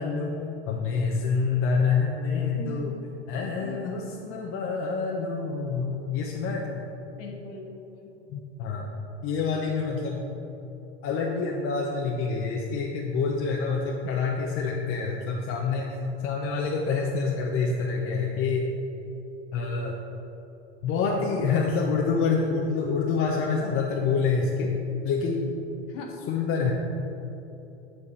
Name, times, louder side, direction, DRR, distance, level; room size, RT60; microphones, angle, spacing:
voice 1, 0.0-2.9 3.3-6.9 8.3-8.9 9.2-10.3 11.0-16.0 16.2-18.7 19.5-20.0 20.8-24.8 25.0-25.5 26.3-26.7, left 4 dB, 35° left, -1 dB, 0.9 m, -27 dB
voice 2, 2.5-3.2 3.6-4.4 7.2-8.1 25.9-26.1, left 3 dB, 50° left, 1 dB, 1.6 m, -42 dB
8.8 x 5.1 x 5.6 m, 2.9 s
hypercardioid pair, 100°, 35 cm